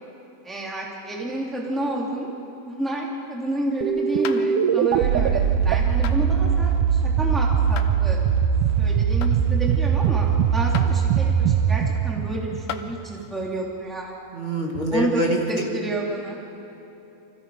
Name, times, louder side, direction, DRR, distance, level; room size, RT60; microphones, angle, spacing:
voice 1, 0.4-2.3 2.7-8.2 8.8-14.1 14.9-15.2 15.5-16.4, right 1 dB, ahead, -3 dB, 2.7 m, -30 dB
sound 1, 3.8-13.1, right 7 dB, 75° right, 2.1 m, -21 dB
sound 2, 4.2-4.5 6.0-6.2 7.8-7.9 9.2-9.4 10.7-10.9 12.0-12.1 12.7-12.9 14.3-14.4, left 9 dB, 80° left, 1.5 m, -34 dB
voice 2, 14.3-15.7, right 1 dB, 20° right, -1 dB, 1.5 m, -25 dB
29.0 x 25.0 x 5.1 m, 3.0 s
omnidirectional pair, 4.1 m